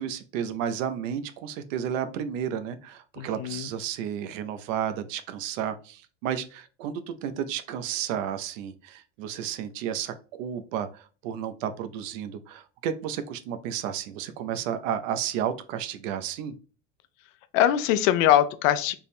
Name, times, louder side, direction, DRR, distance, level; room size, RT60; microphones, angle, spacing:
voice 1, 0.0-16.6, right 9 dB, 85° right, 9 dB, 0.6 m, -32 dB
voice 2, 3.2-3.7 17.5-18.9, left 11 dB, 85° left, 13 dB, 0.5 m, -22 dB
3.5 x 2.1 x 4.2 m, 0.37 s
supercardioid pair, 145°, 37 cm